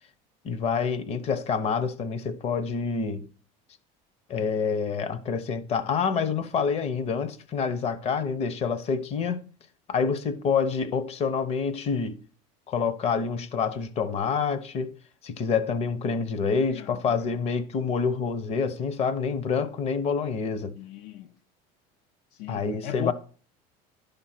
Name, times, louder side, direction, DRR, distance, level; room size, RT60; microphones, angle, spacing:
voice 1, 0.4-3.2 4.3-9.4 9.9-12.2 12.7-14.9 15.2-20.7 22.5-23.1, left 5 dB, 35° left, 0.8 m, -27 dB
voice 2, 16.6-17.4 20.7-21.3 22.3-23.1, left 11 dB, 75° left, 0.5 m, -38 dB
11.5 x 5.2 x 4.4 m
cardioid pair, 145°, 18 cm